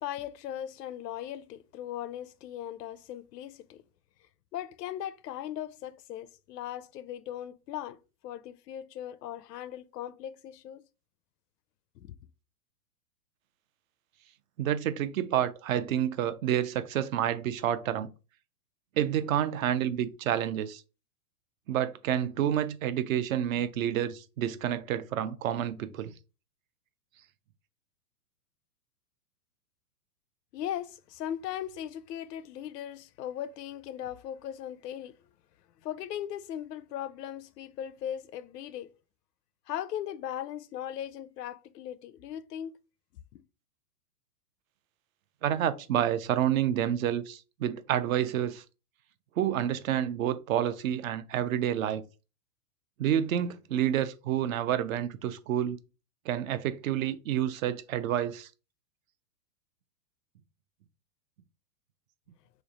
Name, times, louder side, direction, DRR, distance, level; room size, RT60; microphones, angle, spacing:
voice 1, 0.0-3.8 4.5-8.0 8.2-10.8 12.0-12.1 30.5-35.2 35.8-38.9 39.7-42.7 43.3-43.4, left 11 dB, 85° left, 0.6 m, -38 dB
voice 2, 14.6-18.1 19.0-20.8 21.7-26.1 45.4-48.6 49.4-52.0 53.0-55.8 56.3-58.5, right 10 dB, 60° right, 0.5 m, -29 dB
3.2 x 2.4 x 3.9 m
hypercardioid pair, 135°, 47 cm